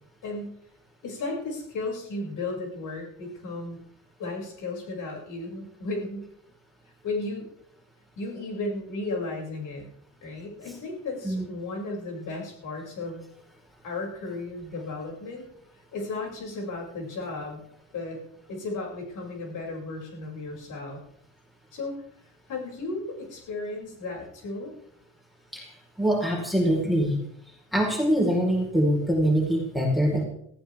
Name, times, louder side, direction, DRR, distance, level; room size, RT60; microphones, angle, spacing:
voice 1, 0.2-0.6 1.0-3.8 4.2-6.3 7.0-7.5 8.2-9.9 10.2-13.3 13.8-15.5 15.9-17.6 17.9-18.2 18.5-21.0 21.7-21.9 22.5-24.7, left 2 dB, 60° left, -1 dB, 6.7 m, -34 dB
voice 2, 26.0-27.1 27.7-30.2, equal, ahead, -1 dB, 4.4 m, -23 dB
18.5 x 15.5 x 3.6 m, 0.72 s
cardioid pair, 120°, 35 cm